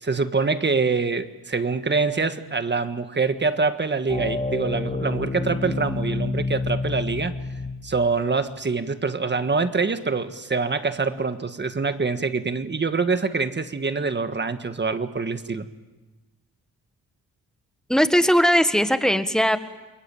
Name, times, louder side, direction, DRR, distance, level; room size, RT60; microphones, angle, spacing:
voice 1, 0.0-7.3 7.8-15.7, right 4 dB, 30° right, 10 dB, 1.6 m, -25 dB
sound 1, 4.1-8.0, left 3 dB, 20° left, 2.7 m, -28 dB
voice 2, 17.9-19.6, equal, ahead, 9 dB, 1.6 m, -19 dB
28.5 x 22.0 x 9.1 m, 1.2 s
cardioid pair, 95°, 34 cm